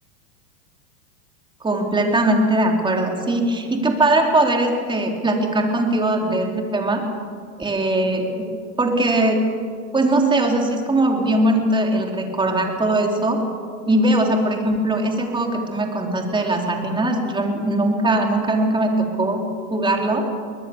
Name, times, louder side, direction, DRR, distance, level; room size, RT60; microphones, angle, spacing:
voice 1, 1.6-7.0 7.6-8.4 8.8-9.4 9.9-13.4 13.9-19.4 19.7-20.2, right 1 dB, 10° right, 2 dB, 3.6 m, -20 dB
22.0 x 20.5 x 7.1 m, 2.1 s
hypercardioid pair, 115°, 40 cm